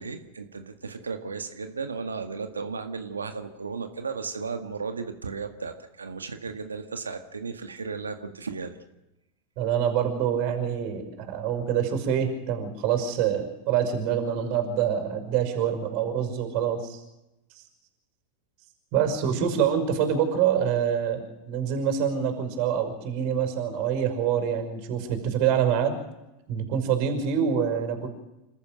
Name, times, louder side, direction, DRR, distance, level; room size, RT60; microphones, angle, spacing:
voice 1, 0.0-8.8, right 4 dB, 90° right, 7 dB, 1.8 m, -35 dB
voice 2, 9.6-17.0 18.9-26.0 26.5-28.1, right 8 dB, 55° right, 6 dB, 5.7 m, -26 dB
28.0 x 13.5 x 7.7 m, 0.96 s
hypercardioid pair, 90°, 0 cm